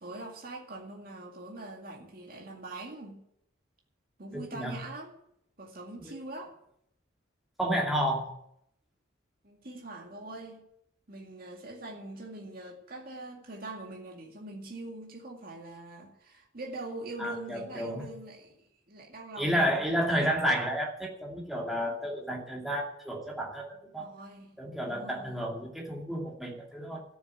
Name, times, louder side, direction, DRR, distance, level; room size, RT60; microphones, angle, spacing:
voice 1, 0.0-3.2 4.2-5.1 5.6-6.6 9.4-10.7 11.1-20.3 23.9-24.6 24.9-25.4, right 2 dB, 45° right, 0 dB, 2.2 m, -43 dB
voice 2, 4.3-4.8 6.0-6.1 7.6-8.3 17.2-18.0 19.4-24.1 24.6-27.0, equal, ahead, -2 dB, 2.4 m, -31 dB
13.5 x 7.0 x 9.0 m, 0.75 s
head